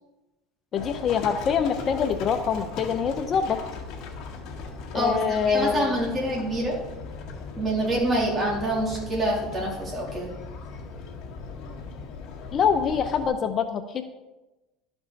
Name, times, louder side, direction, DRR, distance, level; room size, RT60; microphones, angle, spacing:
voice 1, 0.7-3.6 4.9-5.9 12.5-14.0, left 7 dB, 40° left, 9 dB, 0.6 m, -25 dB
Livestock farm animals working animals, 0.8-13.3, left 4 dB, 55° left, 1.8 m, -38 dB
voice 2, 4.9-6.8 7.6-10.3, right 1 dB, 30° right, -3 dB, 3.3 m, -26 dB
12.0 x 5.3 x 4.1 m, 1.1 s
supercardioid pair, 115°, 0 cm